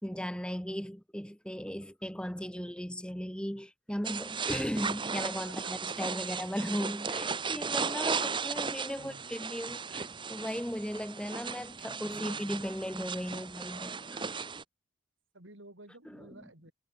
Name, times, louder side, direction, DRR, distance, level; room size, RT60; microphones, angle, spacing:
voice 1, 0.0-14.4 16.1-16.3, equal, 5° left, 3.8 m, -37 dB
sound 1, 4.0-14.6, right 5 dB, 25° right, 1.0 m, -36 dB
voice 2, 12.0-12.6 15.3-16.7, right 1 dB, 65° right, 5.9 m, -53 dB
head